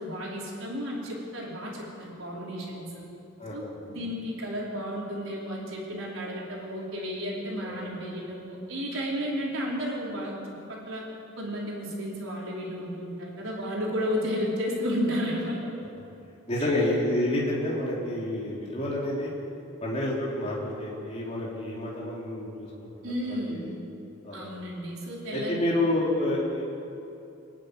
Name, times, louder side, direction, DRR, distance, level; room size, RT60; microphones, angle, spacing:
voice 1, 0.0-3.0 3.5-10.3 10.7-11.0 11.4-15.6 16.6-16.8 23.0-23.7 24.3-25.6, equal, 75° right, -3 dB, 5.0 m, -32 dB
voice 2, 3.4-3.7 7.6-7.8 16.5-19.3 19.8-23.1 23.5-23.7 24.2-24.4 25.3-26.6, left 1 dB, 30° left, -5 dB, 3.9 m, -29 dB
24.5 x 11.5 x 9.9 m, 2.8 s
head